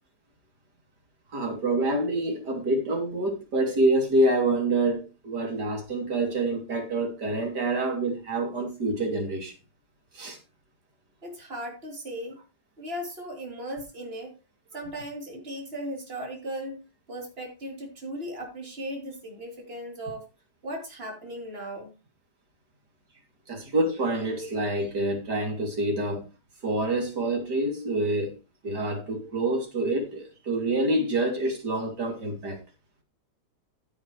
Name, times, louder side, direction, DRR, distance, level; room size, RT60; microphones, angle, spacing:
voice 1, 1.3-9.5 10.1-10.4 23.5-26.3 26.6-28.4 28.6-32.6, right 2 dB, 75° right, 3.6 m, -27 dB
voice 2, 11.2-12.4 12.8-14.4 14.7-16.8 17.1-20.2 20.6-21.9, equal, 35° right, 3.7 m, -37 dB
15.5 x 8.0 x 3.2 m
omnidirectional pair, 1.8 m